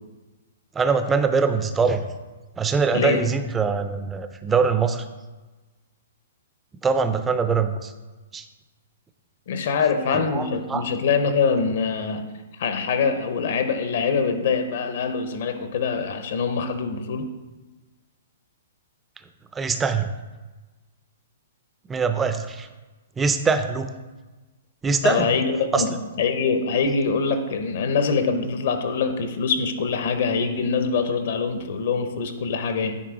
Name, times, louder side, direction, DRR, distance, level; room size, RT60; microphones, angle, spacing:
voice 1, 0.8-2.0 2.6-5.0 6.8-7.9 8.3-8.4 10.3-10.8 19.5-20.1 21.9-22.7 23.2-23.9 24.8-25.3 25.7-25.8, right 5 dB, 10° right, 9 dB, 0.4 m, -23 dB
voice 2, 9.5-12.3 12.6-17.3 25.0-25.9 26.2-33.0, left 5 dB, 55° left, 8 dB, 0.8 m, -24 dB
9.3 x 3.5 x 4.9 m, 1.2 s
hypercardioid pair, 160°, 0 cm